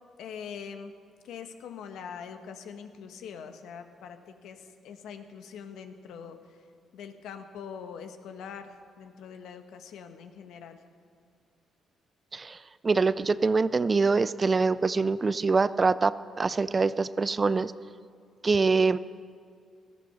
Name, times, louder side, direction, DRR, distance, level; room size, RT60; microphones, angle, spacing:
voice 1, 0.2-0.9 1.2-6.6 6.9-10.8, left 7 dB, 80° left, 7 dB, 1.2 m, -43 dB
voice 2, 12.8-17.7 18.4-19.0, right 4 dB, 30° right, 16 dB, 0.4 m, -24 dB
18.0 x 13.5 x 5.7 m, 2.2 s
cardioid pair, 90°, 0 cm